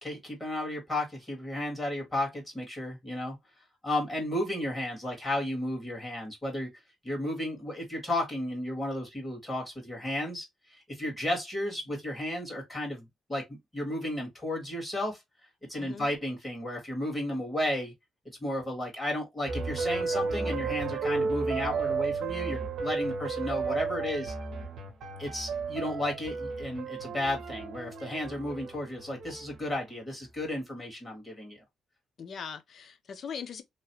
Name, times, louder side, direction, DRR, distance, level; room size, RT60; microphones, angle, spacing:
voice 1, 0.0-3.4 3.8-6.7 7.0-15.2 15.7-17.9 18.4-24.3 25.2-31.6, left 1 dB, 15° left, 1.9 m, -33 dB
voice 2, 15.8-16.1 32.2-33.6, left 6 dB, 55° left, 0.7 m, -40 dB
sound 1, 19.5-29.7, right 4 dB, 75° right, 0.8 m, -33 dB
3.1 x 2.4 x 2.7 m
cardioid pair, 90°, 0 cm